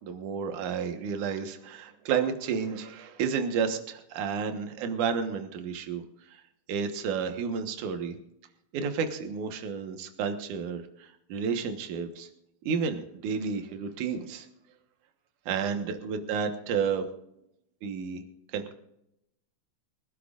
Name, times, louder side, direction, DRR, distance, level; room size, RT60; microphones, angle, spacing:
voice 1, 0.0-6.0 6.3-6.4 6.7-8.2 8.7-12.3 12.7-14.5 15.5-17.0 17.8-18.2 18.5-18.7, right 6 dB, 75° right, 6 dB, 2.7 m, -31 dB
25.0 x 11.5 x 2.5 m, 0.81 s
omnidirectional pair, 3.7 m